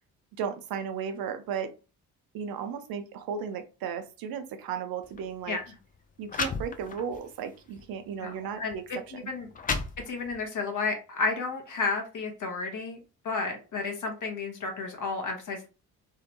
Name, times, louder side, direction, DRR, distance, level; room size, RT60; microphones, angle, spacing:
voice 1, 0.4-1.7 2.3-5.6 6.2-8.8 9.2-9.3, right 7 dB, 55° right, 0.5 m, -35 dB
sound 1, 5.0-5.2 5.9-6.0 6.3-7.2 7.8-7.9 8.7-8.8 9.3-10.5, left 4 dB, 20° left, 0.4 m, -33 dB
voice 2, 8.2-9.5 10.1-13.0 13.2-15.7, left 4 dB, 45° left, 1.0 m, -32 dB
2.6 x 2.1 x 2.8 m
figure-of-eight pair, 40°, 45 cm